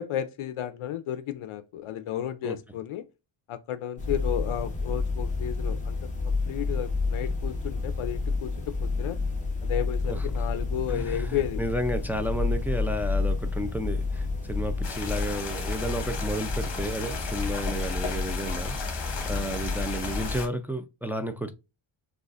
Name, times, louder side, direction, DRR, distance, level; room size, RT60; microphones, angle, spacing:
voice 1, 0.0-3.1 3.5-9.2 9.6-11.6, left 11 dB, 75° left, 0.6 m, -33 dB
sound 1, 4.0-20.4, left 3 dB, 15° left, 1.0 m, -30 dB
voice 2, 10.1-10.5 10.9-21.5, right 1 dB, 5° right, 0.4 m, -32 dB
sound 2, 14.8-20.5, left 5 dB, 55° left, 1.4 m, -36 dB
6.5 x 2.5 x 2.4 m
wide cardioid pair, 150°, 50 cm